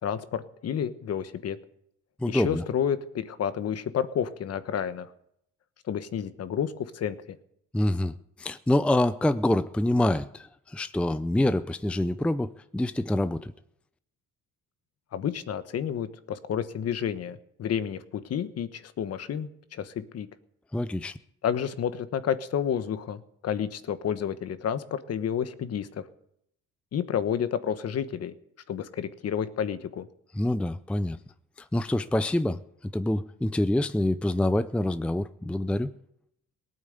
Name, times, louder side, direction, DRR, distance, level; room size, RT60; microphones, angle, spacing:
voice 1, 0.0-1.6 2.3-5.1 5.9-7.4 15.1-20.3 21.4-26.0 26.9-28.3 28.7-30.1, left 8 dB, 50° left, 1.2 m, -30 dB
voice 2, 2.2-2.6 7.7-8.1 8.4-13.5 20.7-21.2 30.3-31.2 31.7-35.9, left 1 dB, 5° left, 0.5 m, -26 dB
18.5 x 9.1 x 8.1 m
cardioid pair, 110°, 32 cm